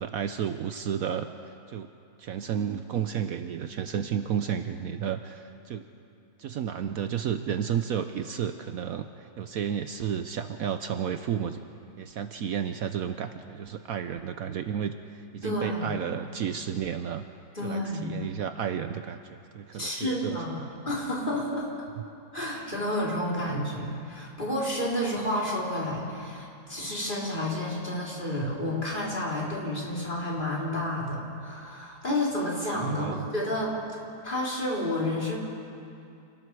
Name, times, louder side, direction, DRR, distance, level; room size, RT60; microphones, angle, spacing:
voice 1, 0.0-1.9 2.2-5.9 6.4-11.6 12.0-14.9 15.3-17.3 17.6-20.4 32.9-33.3, right 8 dB, 65° right, 8 dB, 1.1 m, -32 dB
voice 2, 15.4-16.0 17.5-18.2 19.8-21.7 22.3-33.8 34.2-35.4, left 1 dB, 30° left, -4 dB, 3.8 m, -30 dB
28.5 x 19.0 x 4.7 m, 2.6 s
omnidirectional pair, 1.7 m